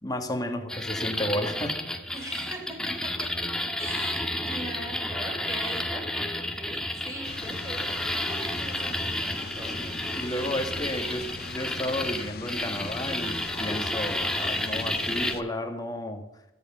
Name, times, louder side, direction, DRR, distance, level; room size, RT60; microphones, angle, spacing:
voice 1, 0.0-1.8 9.8-16.2, left 1 dB, 20° left, 5 dB, 2.2 m, -32 dB
sound 1, 0.7-15.3, left 1 dB, 5° left, 1.9 m, -31 dB
voice 2, 2.1-3.1 3.8-10.6, right 1 dB, 15° right, 0 dB, 6.6 m, -41 dB
sound 2, 7.2-15.4, left 6 dB, 60° left, 0.7 m, -42 dB
17.0 x 14.0 x 5.7 m, 0.94 s
head